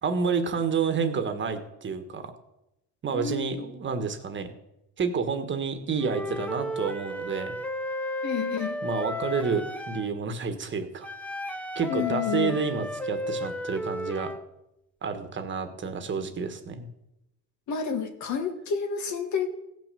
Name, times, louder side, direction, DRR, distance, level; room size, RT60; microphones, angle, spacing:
voice 1, 0.0-2.3 3.0-4.5 5.0-7.5 8.8-11.1 11.5-14.3 15.0-16.9, right 5 dB, 35° right, 8 dB, 1.4 m, -29 dB
voice 2, 3.1-3.7 8.2-8.8 11.9-12.6 17.7-19.5, left 6 dB, 55° left, 7 dB, 1.8 m, -30 dB
Wind instrument woodwind instrument, 6.0-10.1 11.0-14.4, left 1 dB, 5° left, 0.8 m, -33 dB
16.5 x 6.1 x 6.8 m, 0.89 s
cardioid pair, 120°, 35 cm